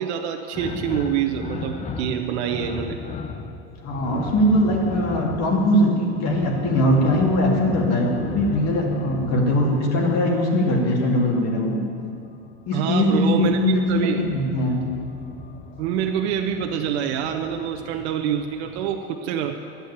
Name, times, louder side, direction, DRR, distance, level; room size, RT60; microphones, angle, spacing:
voice 1, 0.0-3.0 12.7-14.2 15.8-19.6, right 9 dB, 70° right, 4 dB, 0.9 m, -26 dB
sound 1, 0.5-10.5 12.0-18.9, left 5 dB, 20° left, 0.8 m, -37 dB
voice 2, 3.8-11.8 12.7-14.9, left 1 dB, 50° left, 0 dB, 2.7 m, -21 dB
11.5 x 8.5 x 8.3 m, 2.5 s
supercardioid pair, 115°, 33 cm